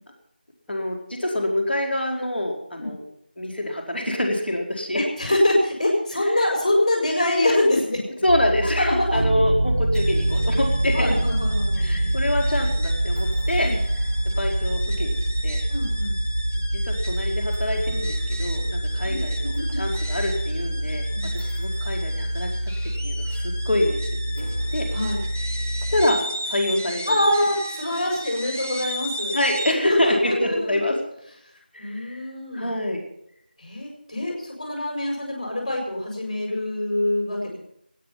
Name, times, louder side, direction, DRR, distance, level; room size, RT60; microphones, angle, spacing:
voice 1, 0.7-3.0 3.3-5.0 6.3-6.5 8.2-11.1 11.8-13.7 13.9-15.2 15.4-15.6 16.8-21.0 21.3-22.7 23.0-24.0 24.4-24.9 25.9-26.2 26.4-27.2 29.3-31.0 31.7-32.2 32.5-33.0, left 1 dB, ahead, -22 dB, 2.4 m, -26 dB
voice 2, 4.9-8.0 8.8-9.3 10.9-12.1 13.6-13.7 15.7-16.2 19.0-19.8 21.1-21.3 24.9-25.2 27.1-29.4 29.7-30.8 31.8-32.7 33.6-37.6, left 1 dB, 25° left, -3 dB, 6.4 m, -24 dB
sound 1, 8.3-26.1, equal, 85° right, 5.8 m, -28 dB
Piano, 9.1-20.5, right 1 dB, 65° right, 0.5 m, -27 dB
sound 2, 9.9-29.7, equal, 15° right, 0.5 m, -36 dB
24.0 x 9.4 x 5.9 m, 0.74 s
figure-of-eight pair, 180°, 5 cm